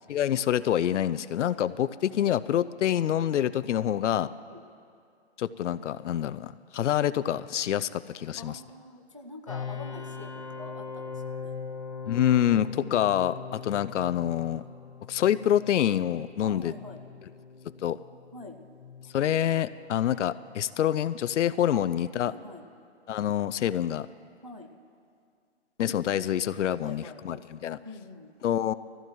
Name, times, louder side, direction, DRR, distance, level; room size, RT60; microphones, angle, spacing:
voice 1, 0.1-4.3 5.4-8.6 12.1-14.6 15.1-16.7 17.8-18.0 19.1-22.3 23.1-24.1 25.8-27.8 28.4-28.7, left 10 dB, 90° left, 15 dB, 0.5 m, -26 dB
voice 2, 8.3-11.5 16.4-17.0 18.3-18.6 21.7-21.8 22.2-22.6 24.4-24.7 26.8-28.3, left 2 dB, 30° right, 2 dB, 0.4 m, -45 dB
sound 1, 9.5-22.3, left 5 dB, 30° left, 0.7 m, -42 dB
20.0 x 15.0 x 3.0 m, 2.3 s
hypercardioid pair, 180°, 35 cm